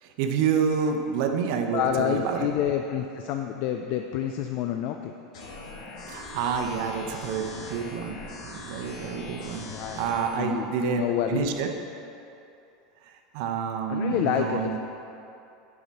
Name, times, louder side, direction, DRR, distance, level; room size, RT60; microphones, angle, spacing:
voice 1, 0.0-2.5 6.1-8.2 8.4-9.7 9.9-11.0 11.3-11.7 13.1-14.8, right 6 dB, 60° right, 5 dB, 0.8 m, -28 dB
voice 2, 1.7-5.1 9.7-10.0 10.4-11.5 13.9-14.8, left 9 dB, 55° left, 5 dB, 0.4 m, -28 dB
sound 1, 5.3-10.3, left 2 dB, 70° left, 1.9 m, -41 dB
11.5 x 4.9 x 4.2 m, 2.7 s
supercardioid pair, 110°, 3 cm